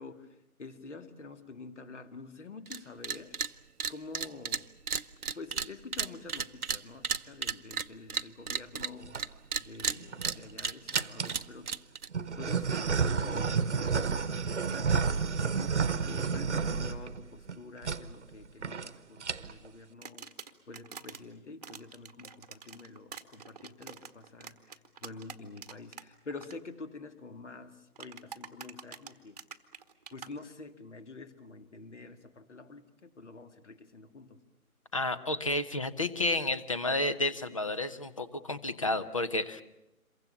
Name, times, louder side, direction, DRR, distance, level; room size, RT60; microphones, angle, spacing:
voice 1, 0.0-3.4 3.9-4.7 5.2-9.2 9.6-11.7 12.4-15.5 16.0-20.3 20.7-29.4 30.1-34.4, left 3 dB, 50° left, 2.3 m, -47 dB
sound 1, 2.7-2.8 3.0-3.5 3.8-9.3 9.5-12.1, right 6 dB, 80° right, 0.9 m, -33 dB
sound 2, 8.8-9.2 9.9-10.5 10.9-11.4 12.1-17.6 17.8-18.0 18.3-18.4 18.6-18.9 19.2-19.7, right 5 dB, 50° right, 1.2 m, -30 dB
sound 3, 20.0-21.2 21.6-26.0 26.3-26.5 28.0-30.3, right 6 dB, 25° right, 1.2 m, -46 dB
voice 2, 34.9-39.6, left 2 dB, 25° left, 0.8 m, -31 dB
27.5 x 23.5 x 7.0 m
figure-of-eight pair, 155°, 44 cm